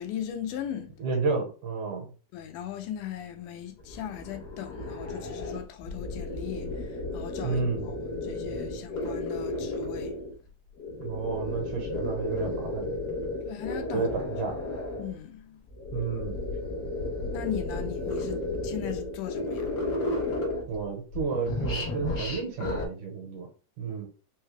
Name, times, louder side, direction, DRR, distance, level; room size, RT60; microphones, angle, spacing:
voice 1, 0.0-0.9 2.3-7.9 8.2-10.2 13.5-14.1 15.0-15.6 17.3-19.7, left 10 dB, 80° left, 2.0 m, -38 dB
voice 2, 1.0-2.1 7.4-7.9 11.0-12.9 13.9-14.6 15.9-16.4 20.7-23.5 23.8-24.1, right 4 dB, 70° right, 2.4 m, -31 dB
sound 1, 3.8-10.3 10.8-15.1 15.7-20.8 21.1-22.9, left 2 dB, 60° left, 1.0 m, -33 dB
5.4 x 2.2 x 3.2 m
omnidirectional pair, 3.9 m